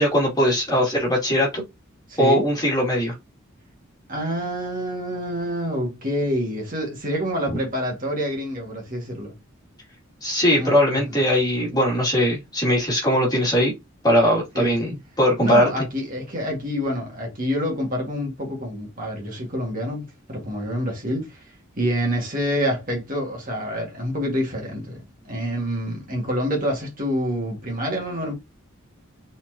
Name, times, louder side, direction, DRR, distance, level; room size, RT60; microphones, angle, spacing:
voice 1, 0.0-1.6 2.2-3.1 7.5-7.6 10.2-13.7 14.0-15.7, equal, 20° left, 2.4 m, -20 dB
voice 2, 2.1-2.4 4.1-9.3 10.6-11.1 14.5-14.7 15.4-21.4 21.8-25.0 25.3-28.3, equal, 40° right, 1.9 m, -27 dB
4.3 x 4.1 x 2.8 m
head